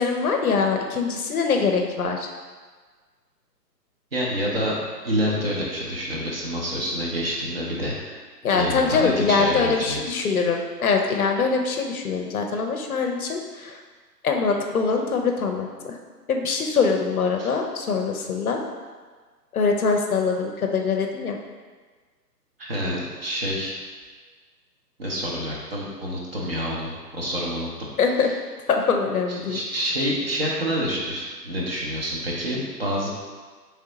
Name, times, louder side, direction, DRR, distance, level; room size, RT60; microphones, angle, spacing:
voice 1, 0.0-2.3 8.4-13.8 14.2-16.0 16.3-18.6 19.5-21.4 28.0-28.3 28.7-29.6, left 5 dB, 60° left, 3 dB, 0.6 m, -23 dB
voice 2, 4.1-4.8 5.0-8.2 8.5-10.0 17.4-17.5 22.6-23.8 25.0-27.7 28.2-28.3 29.3-33.1, equal, 35° right, -4 dB, 0.7 m, -27 dB
3.3 x 2.7 x 3.8 m, 1.5 s
figure-of-eight pair, 145°, 50 cm